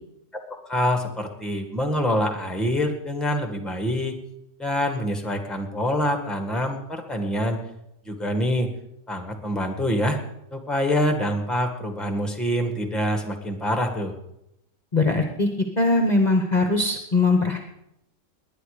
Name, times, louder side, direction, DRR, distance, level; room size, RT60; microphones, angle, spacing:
voice 1, 0.7-4.2 4.6-7.6 8.0-8.7 9.1-10.2 10.5-14.1, equal, ahead, 5 dB, 1.5 m, -25 dB
voice 2, 14.9-15.5 15.8-17.6, left 2 dB, 30° left, 5 dB, 1.1 m, -21 dB
19.0 x 10.5 x 5.0 m, 0.83 s
omnidirectional pair, 1.6 m